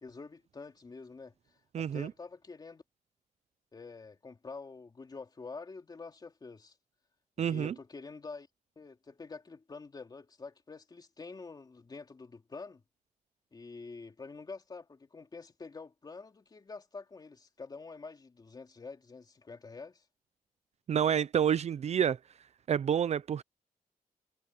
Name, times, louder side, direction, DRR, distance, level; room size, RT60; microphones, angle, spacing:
voice 1, 0.0-1.3 1.8-2.8 3.7-6.7 7.4-8.5 8.8-12.8 13.5-20.0, left 4 dB, 30° left, 3.0 m, -47 dB
voice 2, 1.7-2.1 7.4-7.7 20.9-22.2 22.7-23.4, right 8 dB, 50° right, 0.5 m, -28 dB
wide cardioid pair, 160°, 14 cm